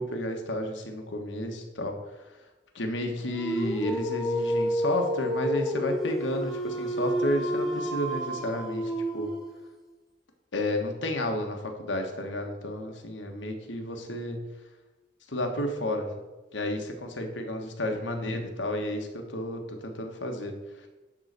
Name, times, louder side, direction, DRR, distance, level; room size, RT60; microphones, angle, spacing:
voice 1, 0.0-1.9 2.7-9.3 10.5-14.4 15.3-16.1 16.5-20.6 20.8-20.9, left 1 dB, 90° left, 4 dB, 1.4 m, -31 dB
Dog, 3.3-9.7, equal, ahead, 1.1 m, -30 dB
11.0 x 3.9 x 6.6 m, 1.1 s
head